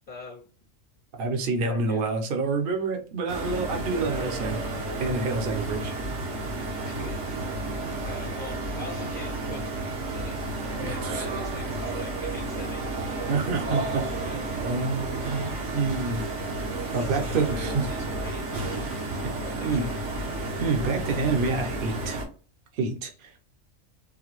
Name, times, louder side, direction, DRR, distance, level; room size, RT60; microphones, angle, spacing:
voice 1, 0.1-0.5 1.6-2.1 6.8-7.5 8.0-10.4 10.8-12.9 17.0-18.8 19.4-19.9, left 3 dB, 50° left, 0 dB, 0.8 m, -43 dB
voice 2, 1.2-4.6 5.0-5.9 10.8-11.2 13.3-16.3 16.9-17.9 19.6-19.8 20.6-22.2 22.8-23.4, right 4 dB, 50° right, 4 dB, 0.8 m, -28 dB
sound 1, 3.3-22.2, right 2 dB, 65° right, 1.2 m, -31 dB
3.8 x 2.2 x 3.0 m, 0.39 s
omnidirectional pair, 1.3 m